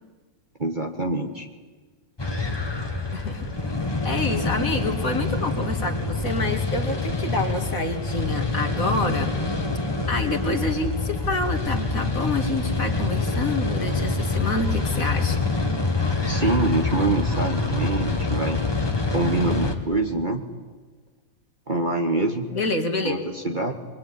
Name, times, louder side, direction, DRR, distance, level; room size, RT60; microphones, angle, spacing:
voice 1, 0.6-1.5 16.3-18.6 19.1-20.4 21.7-22.5 23.0-23.7, right 2 dB, 25° right, 4 dB, 1.8 m, -25 dB
sound 1, 2.2-19.7, left 3 dB, 15° left, 1.9 m, -26 dB
voice 2, 3.1-9.3 10.1-15.4 22.5-23.2, left 2 dB, 45° left, 5 dB, 2.6 m, -27 dB
24.0 x 22.5 x 9.9 m, 1.4 s
omnidirectional pair, 2.0 m